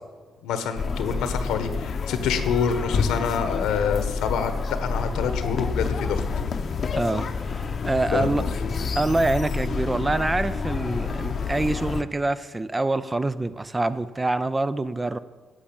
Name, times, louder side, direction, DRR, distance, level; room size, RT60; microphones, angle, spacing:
voice 1, 0.4-4.5 4.8-6.2 8.1-8.7, left 6 dB, 90° left, 1.3 m, -27 dB
sound 1, 0.8-12.0, left 5 dB, 50° left, 0.8 m, -28 dB
voice 2, 7.0-8.4 9.0-15.2, right 2 dB, 20° right, 0.6 m, -25 dB
11.5 x 6.3 x 8.8 m
cardioid pair, 90°, 0 cm